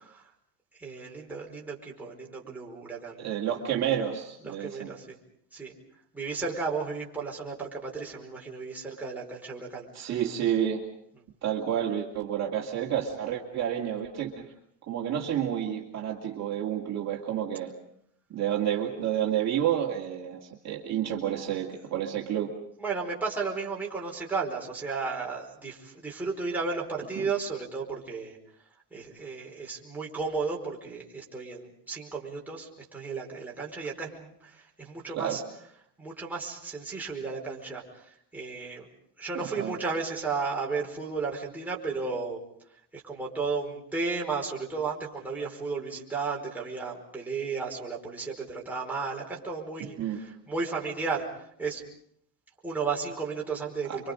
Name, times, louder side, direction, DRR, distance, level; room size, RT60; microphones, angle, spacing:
voice 1, 0.8-3.2 4.4-5.2 5.5-5.8 6.1-10.2 22.8-28.4 28.9-35.4 36.0-38.9 39.2-42.4 42.9-51.8 52.6-54.1, right 4 dB, 5° right, -3 dB, 4.9 m, -34 dB
voice 2, 3.2-4.9 9.9-10.8 11.4-14.5 14.9-17.7 18.3-22.5 27.2-27.3 35.1-35.4 39.3-39.8 49.8-50.2 53.9-54.0, right 10 dB, 40° right, -1 dB, 2.6 m, -30 dB
29.5 x 25.0 x 5.1 m, 0.68 s
cardioid pair, 150°, 41 cm